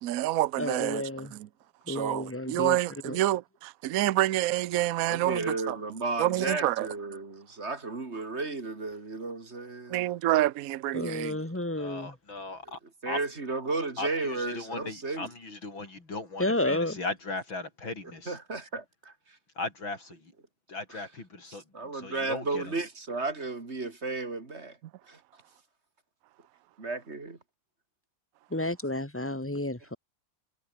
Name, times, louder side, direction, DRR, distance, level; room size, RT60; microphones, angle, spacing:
voice 1, 0.0-1.5 1.9-5.8 6.2-6.9 9.9-11.4, right 14 dB, 70° right, 0.8 m, -28 dB
voice 2, 0.6-1.3 1.9-2.8 3.1-3.2 10.9-12.1 16.4-17.0 28.5-30.0, left 1 dB, 5° left, 2.2 m, -31 dB
voice 3, 5.0-10.1 13.0-15.3 18.3-19.4 20.9-21.1 21.5-24.8 25.1-25.2 26.8-27.4, right 3 dB, 35° right, 3.1 m, -34 dB
voice 4, 11.8-12.8 13.1-13.2 14.0-18.4 19.6-20.3 20.7-21.6 21.9-22.6, left 3 dB, 75° left, 6.3 m, -37 dB
omnidirectional pair, 2.1 m